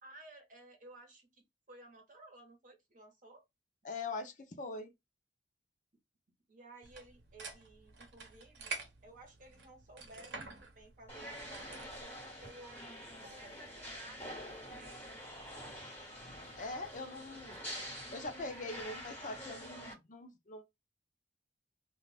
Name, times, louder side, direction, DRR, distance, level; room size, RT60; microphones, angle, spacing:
voice 1, 0.0-3.4 6.5-12.8 13.2-15.2 17.7-18.0 18.6-18.9, right 2 dB, 45° right, 1.0 m, -56 dB
voice 2, 3.8-4.9 16.6-17.6 18.1-20.6, left 3 dB, 45° left, 0.5 m, -42 dB
sound 1, 6.8-12.0, right 4 dB, 75° right, 0.7 m, -48 dB
sound 2, 11.1-19.9, equal, 15° left, 1.6 m, -47 dB
2.5 x 2.3 x 3.3 m
head